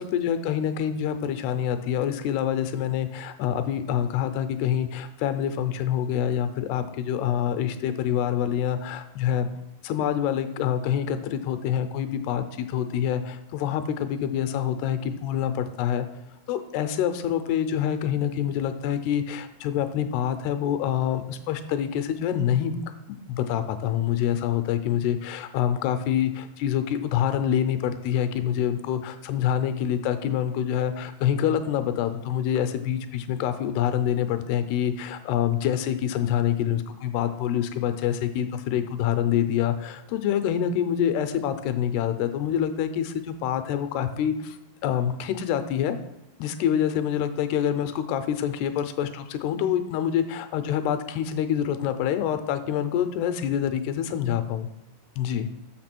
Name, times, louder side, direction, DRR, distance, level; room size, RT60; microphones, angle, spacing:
voice 1, 0.0-9.5 9.8-16.1 16.5-22.8 23.1-44.6 44.8-46.0 46.4-54.7 55.2-55.5, left 9 dB, 80° left, 9 dB, 2.6 m, -26 dB
6.7 x 6.6 x 5.9 m, 0.88 s
omnidirectional pair, 4.8 m